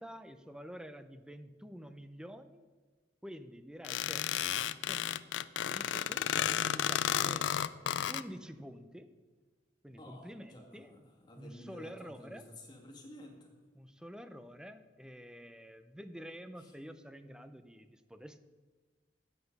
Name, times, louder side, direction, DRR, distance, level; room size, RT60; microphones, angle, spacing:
voice 1, 0.0-2.6 3.2-4.3 4.9-7.5 8.1-9.1 9.8-11.0 11.4-12.5 13.7-18.4, equal, 5° right, 10 dB, 0.5 m, -48 dB
sound 1, 3.8-8.2, left 10 dB, 85° left, 0.4 m, -32 dB
voice 2, 10.0-13.5 16.6-16.8, left 1 dB, 25° left, -1 dB, 2.0 m, -52 dB
9.9 x 8.1 x 5.3 m, 1.3 s
head